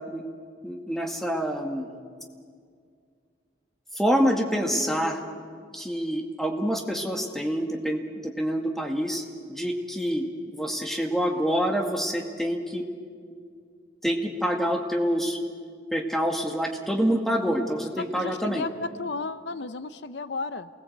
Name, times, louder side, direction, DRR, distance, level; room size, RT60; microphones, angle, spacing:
voice 1, 0.6-1.9 3.9-5.2 5.7-12.8 14.0-15.4 15.9-18.6, equal, ahead, 2 dB, 2.1 m, -27 dB
voice 2, 18.0-20.7, left 3 dB, 80° left, 13 dB, 0.7 m, -33 dB
28.0 x 19.5 x 8.0 m, 2.1 s
head